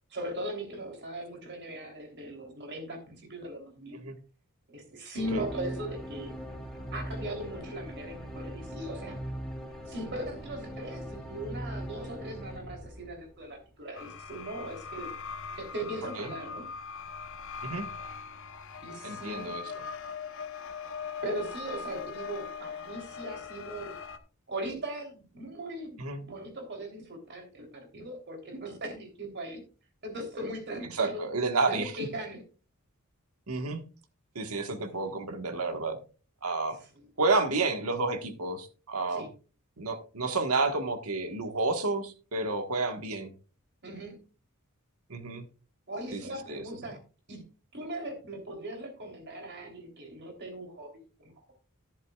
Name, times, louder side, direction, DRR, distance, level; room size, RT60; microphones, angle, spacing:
voice 1, 0.1-4.0 4.7-6.4 6.9-9.2 9.9-15.1 15.6-16.7 18.8-19.5 21.2-24.0 24.5-29.6 30.0-31.3 31.6-32.4 34.9-35.2 36.9-37.1 39.1-39.3 43.8-44.2 45.9-47.0 47.3-47.4 47.7-50.9 51.2-51.3, right 1 dB, 50° right, 3 dB, 3.3 m, -39 dB
sound 1, 5.2-13.6, equal, ahead, 2.3 m, -40 dB
sound 2, 13.9-24.2, left 6 dB, 60° left, 1.0 m, -41 dB
voice 2, 19.0-19.7 26.0-26.2 30.9-31.9 33.5-33.8 34.3-36.0 36.4-36.8 37.2-39.3 39.8-43.3 45.1-45.4 46.1-46.2 46.5-46.6, right 3 dB, 75° right, 7 dB, 1.5 m, -30 dB
11.0 x 10.5 x 2.4 m, 0.35 s
head